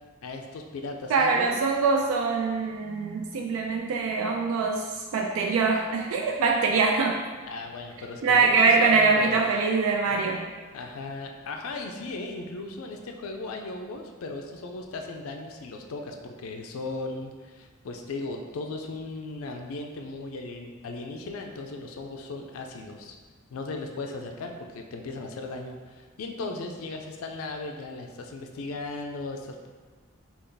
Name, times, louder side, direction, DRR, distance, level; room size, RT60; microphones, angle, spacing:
voice 1, 0.2-1.6 7.4-9.5 10.1-10.2 10.7-23.2 23.5-29.7, left 3 dB, 85° left, 3 dB, 0.4 m, -37 dB
voice 2, 1.1-7.2 8.2-10.5, right 4 dB, 85° right, 3 dB, 0.3 m, -23 dB
3.4 x 2.4 x 3.8 m, 1.4 s
head